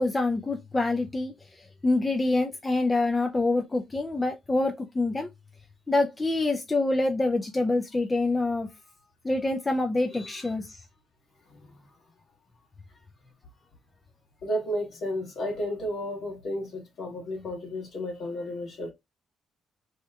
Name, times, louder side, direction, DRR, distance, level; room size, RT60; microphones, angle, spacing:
voice 1, 0.0-1.3 1.8-5.3 5.9-8.7 9.2-10.8, left 2 dB, 20° left, 0.4 m, -26 dB
voice 2, 10.1-10.5 11.5-11.9 13.2-13.3 14.4-18.9, equal, 60° left, 1.3 m, -33 dB
2.8 x 2.2 x 3.4 m
cardioid pair, 90°, 0 cm